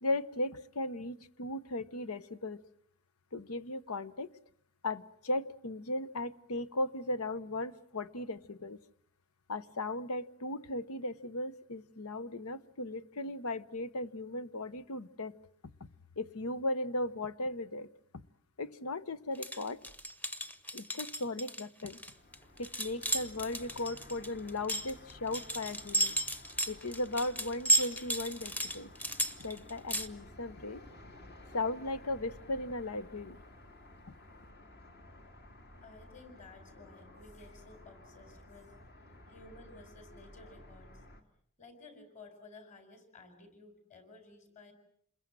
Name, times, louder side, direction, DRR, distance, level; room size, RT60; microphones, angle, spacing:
voice 1, 0.0-2.6 3.3-4.3 4.8-8.8 9.5-15.3 15.8-15.9 16.2-17.9 18.1-18.2 18.6-19.8 20.7-22.0 22.6-26.2 26.7-28.9 29.4-30.8 31.5-33.4, left 2 dB, 85° left, 15 dB, 1.0 m, -37 dB
sound 1, 19.3-30.1, right 1 dB, 10° left, 0.9 m, -34 dB
sound 2, 21.9-41.2, left 1 dB, 50° left, 2.7 m, -54 dB
voice 2, 35.8-38.7 39.3-41.0 41.6-44.7, left 3 dB, 35° left, 7 dB, 5.0 m, -55 dB
28.0 x 21.5 x 7.5 m, 0.66 s
head